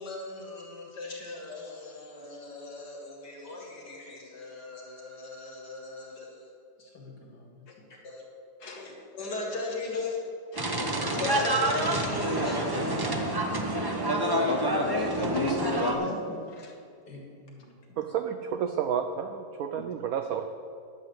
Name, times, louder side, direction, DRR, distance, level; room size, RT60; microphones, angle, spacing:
voice 1, 0.0-6.5 6.8-7.6 8.0-8.2 8.8-10.2 11.1-12.7 17.1-18.0, left 3 dB, 60° left, -1 dB, 2.8 m, -38 dB
sound 1, 10.6-16.0, right 1 dB, 25° right, 0.4 m, -27 dB
voice 2, 13.9-16.7, left 3 dB, 80° left, -2 dB, 2.5 m, -34 dB
voice 3, 18.0-20.5, right 8 dB, 70° right, 6 dB, 0.8 m, -31 dB
10.5 x 6.5 x 7.8 m, 2.4 s
omnidirectional pair, 2.1 m